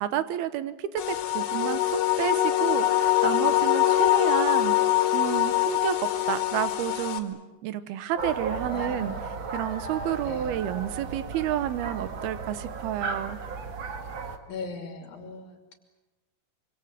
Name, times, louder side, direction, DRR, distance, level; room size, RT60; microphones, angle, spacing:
voice 1, 0.0-4.8 5.1-6.0 6.3-9.2 9.5-13.4, right 11 dB, 75° right, 13 dB, 2.8 m, -30 dB
sound 1, 1.0-7.2, left 14 dB, 75° left, 4.0 m, -23 dB
sound 2, 8.2-14.4, right 4 dB, 50° right, 1.4 m, -35 dB
voice 2, 8.7-9.3 10.2-10.5 14.5-15.7, left 4 dB, 60° left, 4 dB, 4.5 m, -39 dB
26.0 x 25.0 x 8.1 m, 1.1 s
omnidirectional pair, 5.0 m